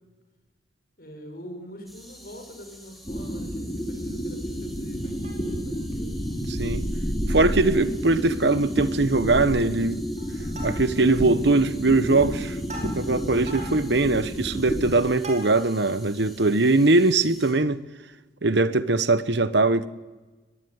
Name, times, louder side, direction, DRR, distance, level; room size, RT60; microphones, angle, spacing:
voice 1, 1.0-6.2, equal, 50° left, 6.0 m, -43 dB
sound 1, 1.9-17.5, equal, ahead, 4.5 m, -49 dB
sound 2, 3.0-14.9, equal, 20° left, 2.9 m, -30 dB
Plucked string instrument, 5.0-5.8 6.3-6.4 6.6-6.8 7.3-7.9 8.2-8.4 8.7-9.1 9.4-9.8 10.2-11.2 11.7-15.9 16.4-16.5, right 2 dB, 35° right, 5.5 m, -43 dB
voice 2, 6.5-6.8 7.3-10.0 10.6-17.8 18.4-19.9, right 2 dB, 65° right, 1.1 m, -21 dB
23.0 x 21.0 x 9.6 m
head